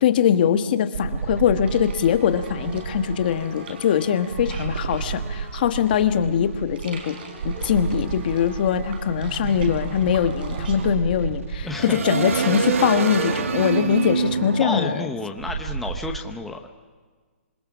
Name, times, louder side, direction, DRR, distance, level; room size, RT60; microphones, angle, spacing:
voice 1, 0.0-7.2 7.4-15.0, left 8 dB, 40° left, 9 dB, 1.3 m, -22 dB
sound 1, 0.9-3.2 4.3-6.9 7.4-16.2, right 5 dB, 70° right, 2.0 m, -28 dB
sound 2, 1.6-10.9, right 4 dB, 45° right, 4.5 m, -40 dB
voice 2, 11.6-12.0 14.6-16.7, left 2 dB, ahead, 2 dB, 0.8 m, -30 dB
26.5 x 21.0 x 6.2 m, 1.5 s
hypercardioid pair, 165°, 7 cm